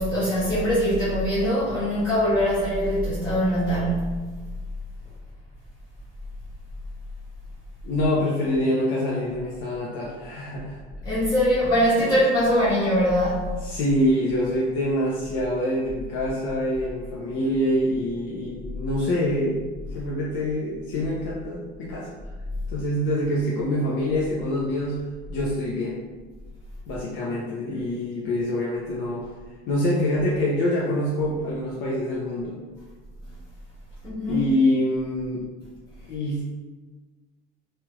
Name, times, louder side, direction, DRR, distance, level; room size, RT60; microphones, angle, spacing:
voice 1, 0.0-4.2 11.0-13.5 34.0-34.4, equal, 20° left, -11 dB, 0.7 m, -22 dB
voice 2, 7.8-10.8 12.0-12.2 13.6-19.6 19.9-22.1 22.7-25.0 25.3-26.0 26.9-29.3 29.7-32.6 34.3-35.4 36.1-36.4, left 1 dB, 65° left, -6 dB, 0.6 m, -25 dB
3.2 x 2.3 x 3.0 m, 1.3 s
cardioid pair, 170°, 21 cm